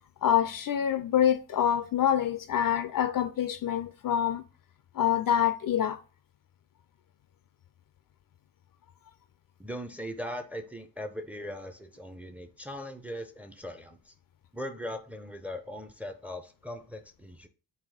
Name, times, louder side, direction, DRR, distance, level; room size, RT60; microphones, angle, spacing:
voice 1, 0.2-4.4 4.9-6.0, left 10 dB, 50° left, 0.5 m, -26 dB
voice 2, 9.6-14.1 14.5-17.5, equal, 5° right, 0.5 m, -39 dB
4.0 x 2.2 x 4.2 m
supercardioid pair, 50°, 46 cm